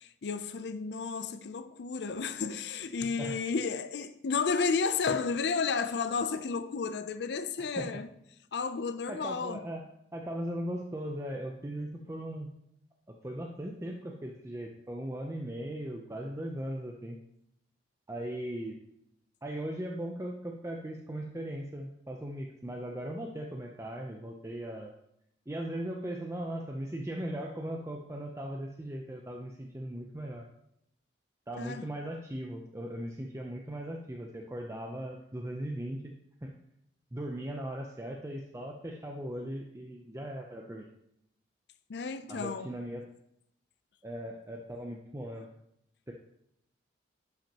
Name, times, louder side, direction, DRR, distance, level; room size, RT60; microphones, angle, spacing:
voice 1, 0.0-8.1 8.5-9.6 31.6-31.9 41.9-42.7, left 5 dB, 65° left, 0.5 m, -32 dB
voice 2, 9.1-9.9 10.1-12.5 13.2-17.2 18.1-18.8 19.4-24.9 25.5-30.5 31.5-36.1 36.4-36.5 37.1-40.9 42.3-43.0 44.0-45.5 46.1-46.2, right 1 dB, 15° right, 0.5 m, -38 dB
10.5 x 5.8 x 2.9 m
head